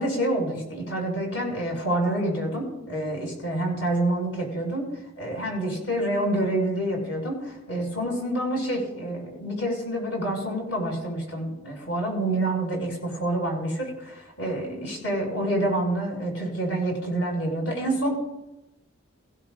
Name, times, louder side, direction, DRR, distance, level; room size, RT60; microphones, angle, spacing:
voice 1, 0.0-4.9 5.2-18.1, right 1 dB, 65° left, -1 dB, 6.0 m, -27 dB
17.0 x 16.5 x 2.6 m, 0.96 s
head